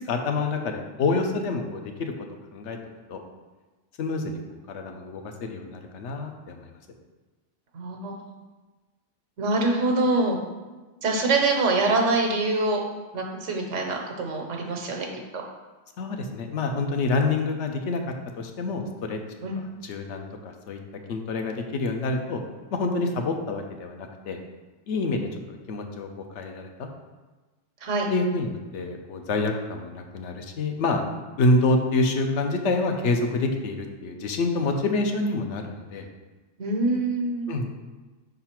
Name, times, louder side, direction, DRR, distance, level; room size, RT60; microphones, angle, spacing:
voice 1, 0.1-2.1 2.5-2.8 3.1-3.2 4.0-6.7 16.0-18.0 18.4-19.2 19.8-20.8 21.1-22.4 22.7-24.4 24.9-26.1 26.3-26.9 28.1-31.0 31.4-36.1 37.5-37.7, left 3 dB, 75° left, 4 dB, 1.0 m, -27 dB
voice 2, 7.7-8.2 9.4-10.4 11.0-12.8 13.1-15.1 15.3-15.4 19.4-19.6 27.8-28.1 36.6-37.5, right 2 dB, 85° right, 1 dB, 1.3 m, -24 dB
5.7 x 4.0 x 4.4 m, 1.2 s
omnidirectional pair, 1.2 m